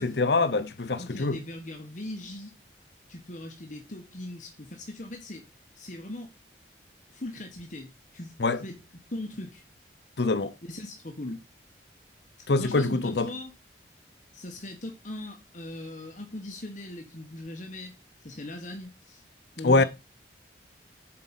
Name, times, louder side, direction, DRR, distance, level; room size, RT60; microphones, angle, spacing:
voice 1, 0.0-1.4 8.4-8.6 10.2-10.5 12.5-13.3 19.6-19.8, left 3 dB, 65° left, 0.7 m, -24 dB
voice 2, 1.0-2.5 3.1-5.5 5.8-6.3 7.1-8.3 8.6-8.8 9.1-9.6 10.6-11.4 12.4-13.5 14.3-19.2 19.6-19.8, left 1 dB, 45° left, 1.2 m, -40 dB
7.5 x 4.9 x 5.7 m
head